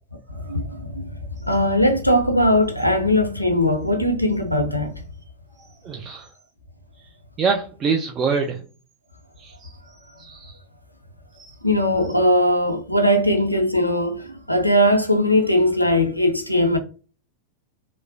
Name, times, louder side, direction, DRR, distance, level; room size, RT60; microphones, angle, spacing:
voice 1, 0.3-5.0 11.6-16.8, left 1 dB, 90° left, 0.4 m, -20 dB
voice 2, 5.6-6.3 7.4-8.6 9.4-9.8 10.2-10.6 11.3-11.5, right 5 dB, 25° right, 0.3 m, -26 dB
3.0 x 2.0 x 2.5 m
figure-of-eight pair, 90°, 0 cm